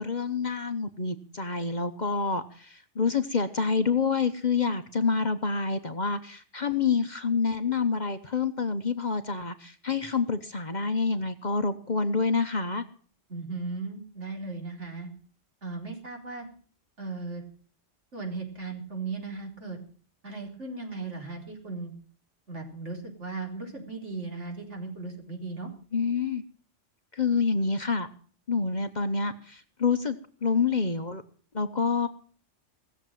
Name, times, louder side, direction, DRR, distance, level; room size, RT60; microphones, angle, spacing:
voice 1, 0.0-12.8 25.9-26.4 27.1-28.1 28.5-31.2 31.5-32.1, left 5 dB, 40° left, 9 dB, 1.0 m, -27 dB
voice 2, 13.3-15.1 15.6-16.5 17.0-17.4 18.1-19.8 20.2-21.9 22.5-25.7, right 3 dB, 70° right, 1 dB, 4.5 m, -37 dB
18.5 x 7.4 x 9.2 m, 0.44 s
omnidirectional pair, 1.3 m